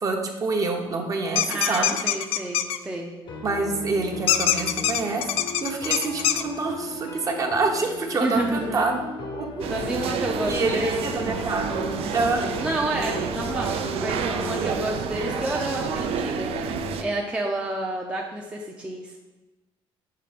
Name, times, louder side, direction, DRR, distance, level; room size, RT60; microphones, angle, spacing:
voice 1, 0.0-2.0 3.4-5.3 5.6-9.0 9.3-9.6 10.5-11.7 12.1-12.4, right 3 dB, 35° right, 2 dB, 0.9 m, -26 dB
sound 1, 1.3-2.8 4.3-6.4, left 10 dB, 80° left, 0.4 m, -23 dB
voice 2, 1.5-3.1 8.2-8.8 9.7-11.1 12.6-16.5 17.0-19.2, right 1 dB, 10° right, -1 dB, 0.5 m, -29 dB
sound 2, 3.2-17.2, left 2 dB, 55° left, 0.7 m, -37 dB
sound 3, 9.6-17.0, right 7 dB, 75° right, 0.5 m, -29 dB
6.8 x 3.3 x 5.0 m, 1.1 s
cardioid pair, 145°, 10 cm